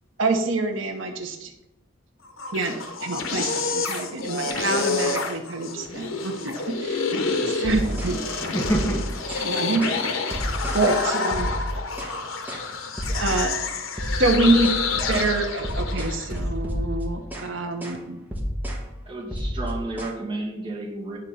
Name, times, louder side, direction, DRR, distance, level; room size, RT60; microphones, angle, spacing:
voice 1, 0.2-1.5 2.5-2.7 3.0-7.0 7.5-8.2 9.4-10.1 10.7-11.5 13.1-13.5 14.2-18.2, right 2 dB, 70° right, 5 dB, 0.9 m, -26 dB
sound 1, 2.2-16.4, left 4 dB, 85° left, 0.9 m, -28 dB
voice 2, 7.4-7.9 8.4-9.6 10.3-10.9, right 1 dB, 15° left, 1 dB, 0.9 m, -30 dB
sound 2, 7.6-8.2 8.6-9.5 9.8-10.0 10.3-10.9 11.3-12.2 12.5-12.7 13.0-13.5 14.0-17.5 17.8-18.0 18.3-18.9 19.3-20.1, equal, 10° right, 1.2 m, -30 dB
voice 3, 19.1-21.2, right 2 dB, 25° right, -3 dB, 2.0 m, -32 dB
9.8 x 4.0 x 5.6 m, 0.90 s
head